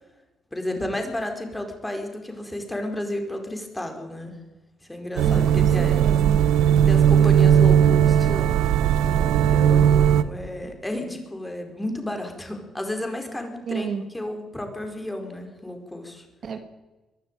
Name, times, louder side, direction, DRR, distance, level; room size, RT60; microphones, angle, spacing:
voice 1, 0.5-4.4 4.8-6.0 6.8-8.6 9.2-13.9 14.1-16.3, left 1 dB, 10° left, 5 dB, 4.8 m, -32 dB
voice 2, 5.2-6.4 13.7-14.0 16.4-16.6, right 6 dB, 55° right, 8 dB, 1.9 m, -31 dB
sound 1, 5.2-10.2, right 9 dB, 85° right, 0.9 m, -18 dB
22.5 x 13.0 x 9.2 m, 1.1 s
cardioid pair, 90°, 0 cm